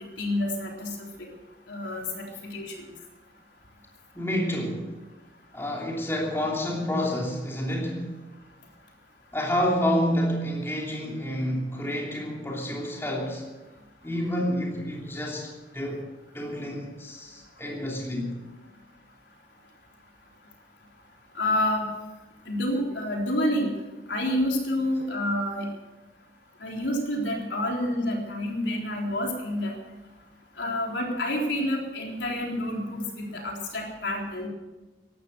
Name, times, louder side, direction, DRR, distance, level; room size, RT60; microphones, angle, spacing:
voice 1, 0.2-0.9 1.7-2.7 21.4-21.9 22.5-23.7 24.1-25.7 26.6-29.7 30.6-34.5, left 1 dB, 85° left, 3.8 m, -28 dB
voice 2, 4.1-5.0 5.5-8.1 9.3-13.4 14.0-16.0 16.3-18.4, equal, 15° left, 3.0 m, -29 dB
16.0 x 12.0 x 6.8 m
head